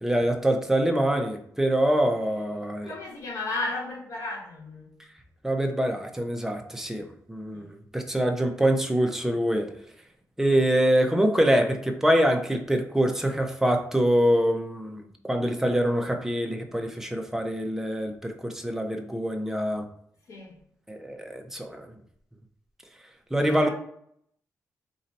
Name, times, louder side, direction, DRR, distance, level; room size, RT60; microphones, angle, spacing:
voice 1, 0.0-2.9 5.4-9.7 10.4-19.8 20.9-21.9 23.3-23.7, right 1 dB, 5° right, 4 dB, 0.6 m, -25 dB
voice 2, 2.8-4.9 7.5-7.7 10.4-10.7 11.1-11.4 20.3-20.6 23.5-23.7, left 2 dB, 60° left, -3 dB, 1.4 m, -35 dB
4.3 x 2.7 x 4.1 m, 0.67 s
cardioid pair, 115°, 6 cm